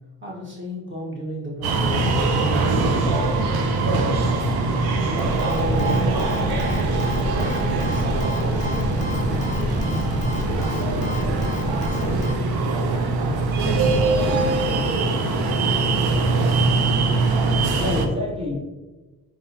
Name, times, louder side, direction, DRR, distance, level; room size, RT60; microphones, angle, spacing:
voice 1, 0.2-2.9 3.3-4.3 4.8-6.2 7.3-8.8 9.1-10.1 10.4-10.9 11.2-12.3 12.8-13.1, equal, 30° right, -3 dB, 1.3 m, -34 dB
sound 1, 1.6-18.1, right 3 dB, 80° right, 0.6 m, -22 dB
sound 2, 5.2-12.3, left 2 dB, 20° left, 0.4 m, -29 dB
voice 2, 17.4-18.6, left 2 dB, 15° right, -1 dB, 0.7 m, -29 dB
4.7 x 3.7 x 2.7 m, 1.2 s
wide cardioid pair, 155°, 36 cm